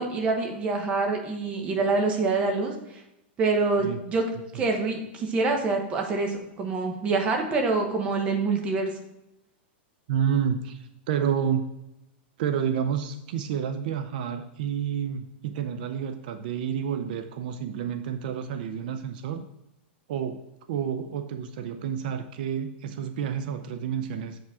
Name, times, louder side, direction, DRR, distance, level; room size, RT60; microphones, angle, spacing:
voice 1, 0.0-2.7 3.4-4.2 4.5-8.9, right 3 dB, 20° right, 2 dB, 0.9 m, -26 dB
voice 2, 10.1-11.7 12.4-19.4 20.1-20.4 20.7-24.4, right 8 dB, 50° right, 8 dB, 0.5 m, -29 dB
7.5 x 4.8 x 3.6 m, 0.88 s
supercardioid pair, 165°, 6 cm